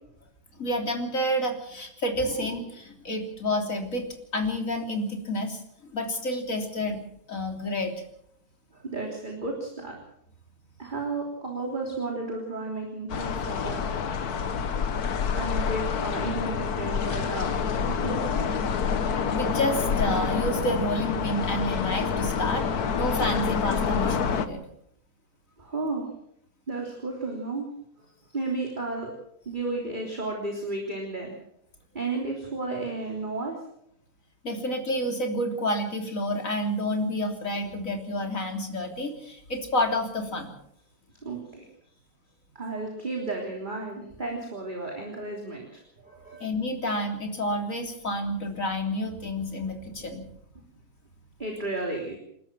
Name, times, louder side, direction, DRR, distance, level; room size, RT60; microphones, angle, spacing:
voice 1, 0.6-4.1 4.3-5.6 5.9-7.0 7.3-7.9 19.3-22.7 23.0-24.6 34.4-40.5 46.4-50.2, left 1 dB, 55° left, 3 dB, 3.8 m, -29 dB
voice 2, 8.7-10.0 10.8-13.8 15.4-17.5 17.8-18.5 25.6-26.1 26.7-27.7 28.3-29.1 29.5-31.3 31.9-33.6 41.2-41.6 42.6-46.5 51.4-52.2, right 3 dB, 30° right, 0 dB, 3.5 m, -33 dB
sound 1, 13.1-24.5, left 6 dB, 70° left, 1.7 m, -27 dB
29.0 x 12.5 x 7.5 m, 0.74 s
omnidirectional pair, 1.7 m